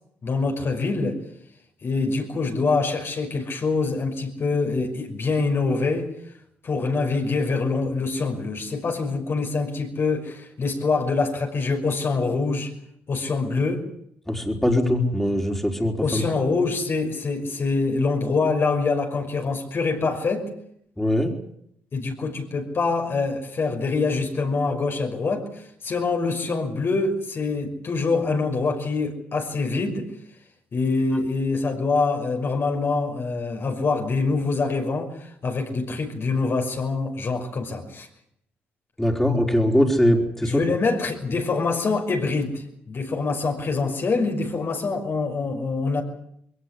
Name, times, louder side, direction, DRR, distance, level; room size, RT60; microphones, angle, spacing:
voice 1, 0.2-1.2 1.8-6.1 6.6-12.7 13.1-13.9 16.0-20.5 21.9-30.1 30.7-38.1 40.4-46.0, left 3 dB, 50° left, 3 dB, 5.7 m, -25 dB
voice 2, 14.3-16.2 21.0-21.3 39.0-40.6, left 1 dB, 5° left, 2 dB, 4.8 m, -21 dB
21.5 x 18.0 x 10.0 m, 0.72 s
supercardioid pair, 60°, 5 cm